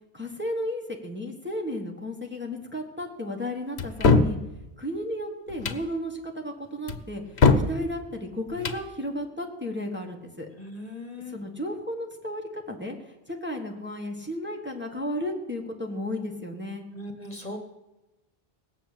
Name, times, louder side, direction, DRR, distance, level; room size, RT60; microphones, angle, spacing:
voice 1, 0.1-4.4 4.8-10.5 11.3-16.9, left 1 dB, 10° right, 1 dB, 1.7 m, -34 dB
sound 1, 3.8-4.4 5.5-5.8 6.9-7.7 8.5-8.8, left 4 dB, 75° left, 1.2 m, -21 dB
voice 2, 10.6-11.4 16.9-17.6, left 1 dB, 35° left, 5 dB, 1.6 m, -38 dB
18.5 x 7.5 x 8.7 m, 1.0 s
omnidirectional pair, 1.1 m